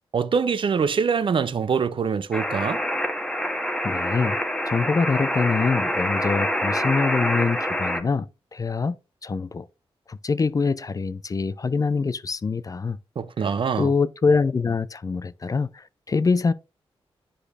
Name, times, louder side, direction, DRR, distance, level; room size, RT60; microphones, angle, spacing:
voice 1, 0.1-2.8 13.2-13.9, right 6 dB, 60° right, 0.5 m, -24 dB
sound 1, 2.3-8.0, equal, 5° left, 1.0 m, -26 dB
voice 2, 3.8-4.4 4.7-9.7 10.1-13.0 13.4-13.5 13.8-16.5, left 4 dB, 35° left, 0.4 m, -24 dB
10.0 x 5.0 x 2.4 m
cardioid pair, 65°, 10 cm